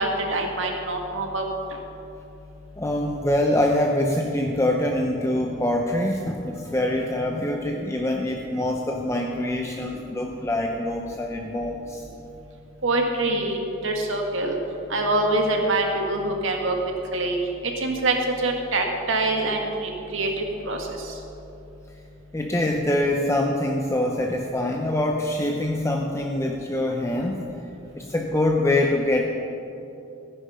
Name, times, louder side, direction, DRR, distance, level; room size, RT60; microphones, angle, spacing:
voice 1, 0.0-1.5 12.8-14.6 14.9-16.8 17.1-17.4 17.8-18.2 18.4-20.8, right 2 dB, 70° right, 2 dB, 1.8 m, -25 dB
voice 2, 2.8-12.0 22.3-27.4 27.9-29.2, left 1 dB, 15° left, 1 dB, 0.6 m, -24 dB
15.0 x 10.0 x 5.6 m, 2.9 s
head